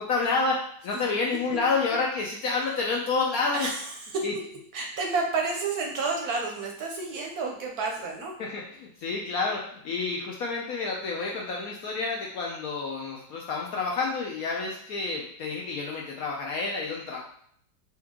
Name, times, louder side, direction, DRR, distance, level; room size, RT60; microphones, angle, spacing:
voice 1, 0.0-3.7 4.2-4.3 8.4-17.2, left 4 dB, 70° left, -1 dB, 0.9 m, -29 dB
voice 2, 3.5-4.2 4.7-8.3, right 4 dB, 65° right, 1 dB, 1.0 m, -30 dB
4.2 x 3.1 x 3.6 m, 0.66 s
omnidirectional pair, 2.0 m